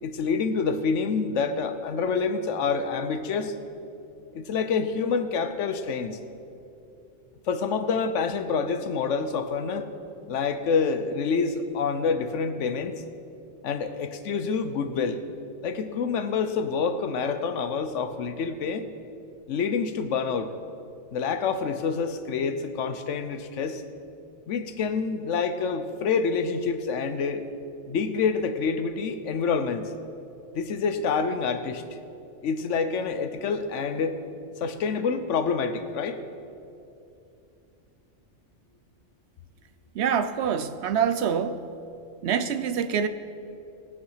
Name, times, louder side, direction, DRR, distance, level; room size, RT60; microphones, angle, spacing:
voice 1, 0.0-3.5 4.3-6.2 7.5-9.9 10.3-13.0 13.6-15.2 15.6-18.9 19.5-20.5 21.1-23.8 24.5-27.4 27.9-29.9 30.5-31.8 32.4-34.2 34.6-36.2, left 5 dB, 75° left, 10 dB, 1.0 m, -27 dB
voice 2, 39.9-41.7 42.2-43.1, right 7 dB, 70° right, 11 dB, 0.8 m, -25 dB
18.5 x 6.1 x 5.6 m, 2.7 s
omnidirectional pair, 1.3 m